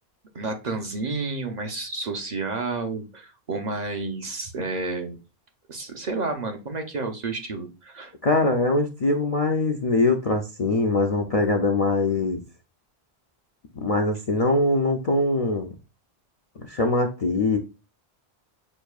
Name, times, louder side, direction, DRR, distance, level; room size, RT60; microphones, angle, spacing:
voice 1, 0.3-5.2 5.7-8.1, right 3 dB, 50° right, 4 dB, 0.7 m, -30 dB
voice 2, 8.2-12.4 13.8-15.7 16.7-17.6, left 2 dB, 50° left, 3 dB, 0.4 m, -22 dB
6.3 x 2.6 x 2.3 m, 0.30 s
omnidirectional pair, 1.1 m